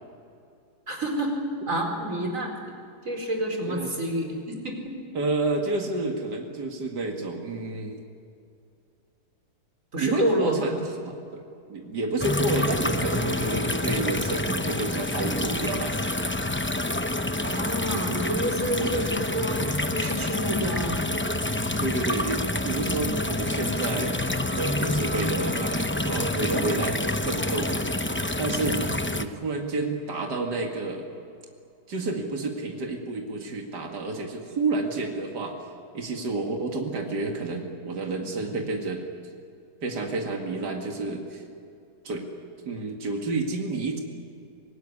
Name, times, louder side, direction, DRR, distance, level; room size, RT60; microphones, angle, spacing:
voice 1, 0.9-2.5 3.0-5.0 9.9-10.6 17.3-21.0, right 1 dB, 50° right, 2 dB, 4.9 m, -29 dB
voice 2, 5.1-8.0 10.0-11.4 11.7-15.9 18.8-19.1 21.8-27.9 28.4-31.0 31.9-35.6 35.9-39.1 39.8-41.4 42.0-42.2 42.7-44.0, right 2 dB, 75° right, 2 dB, 2.8 m, -30 dB
sound 1, 12.2-29.2, left 1 dB, 20° left, 0.3 m, -27 dB
25.0 x 19.0 x 9.9 m, 2.5 s
omnidirectional pair, 1.8 m